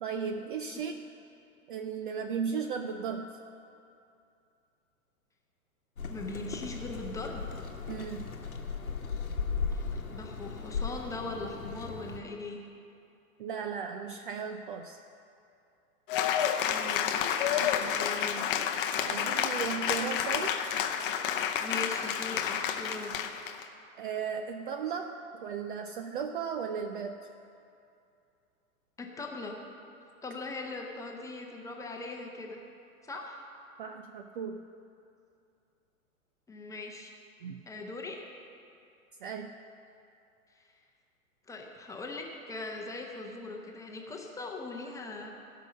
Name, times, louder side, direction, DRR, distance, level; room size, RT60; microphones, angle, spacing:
voice 1, 0.0-0.9 1.7-3.3 7.9-8.3 13.4-15.0 17.6-17.9 19.0-20.6 24.0-27.2 33.8-34.6 37.4-37.6 39.2-39.5, right 6 dB, 40° right, 6 dB, 0.5 m, -36 dB
sound 1, 6.0-12.2, left 5 dB, 75° left, 1.1 m, -36 dB
voice 2, 6.1-7.5 9.7-9.8 10.1-12.6 16.7-17.2 17.5-18.6 21.6-23.1 29.0-29.6 30.2-32.6 33.0-33.4 36.5-37.1 37.7-38.2 40.6-40.7 41.5-45.3, left 3 dB, 5° left, 1 dB, 0.9 m, -40 dB
Cheering / Applause, 16.1-23.6, left 9 dB, 40° left, 0.7 m, -30 dB
15.5 x 5.7 x 6.3 m, 2.6 s
figure-of-eight pair, 105°, 43 cm